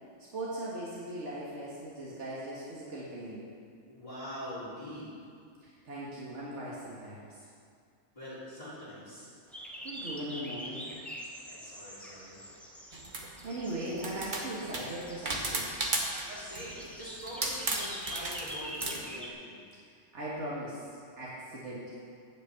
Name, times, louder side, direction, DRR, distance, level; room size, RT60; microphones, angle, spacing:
voice 1, 0.3-3.5 5.9-7.3 9.8-10.9 13.4-15.6 20.1-20.8 21.2-22.0, right 1 dB, 75° right, -7 dB, 2.1 m, -39 dB
voice 2, 3.9-5.1 8.1-9.3 11.5-12.4 16.3-19.6, equal, 30° left, -14 dB, 3.5 m, -43 dB
sound 1, 9.5-19.3, equal, ahead, 1.3 m, -45 dB
sound 2, 12.9-13.4 14.0-16.3 16.5-16.8 17.3-19.0, right 2 dB, 45° right, 1.3 m, -34 dB
9.6 x 7.2 x 7.7 m, 2.2 s
omnidirectional pair, 1.2 m